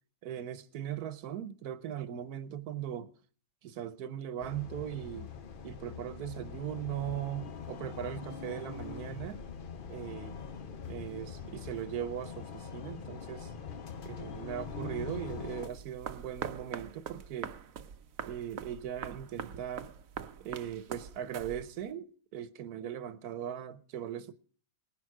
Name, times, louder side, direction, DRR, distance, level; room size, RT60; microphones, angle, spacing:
voice 1, 0.2-3.1 3.6-5.3 5.6-9.4 9.9-10.4 10.9-13.5 14.0-17.5 18.2-19.9 20.4-24.3, right 10 dB, 90° right, 1.4 m, -39 dB
sound 1, 4.4-15.7, left 6 dB, 45° left, 0.9 m, -43 dB
sound 2, 15.6-21.9, right 8 dB, 65° right, 1.2 m, -43 dB
19.0 x 11.0 x 4.8 m
omnidirectional pair, 1.6 m